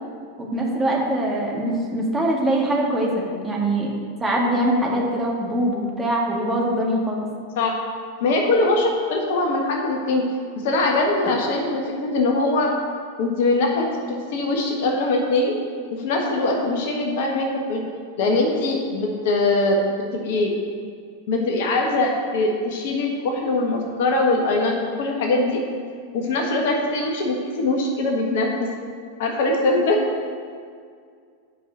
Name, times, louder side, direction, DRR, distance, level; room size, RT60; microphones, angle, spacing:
voice 1, 0.4-3.9 4.2-7.3, right 1 dB, 10° right, -3 dB, 1.9 m, -23 dB
voice 2, 8.2-10.2 10.6-12.7 13.2-13.9 14.3-15.6 15.9-17.8 18.2-19.8 20.1-20.5 21.3-25.6 26.1-28.7 29.2-30.0, left 2 dB, 50° left, 0 dB, 1.4 m, -22 dB
7.8 x 5.8 x 7.4 m, 2.1 s
figure-of-eight pair, 90°, 0 cm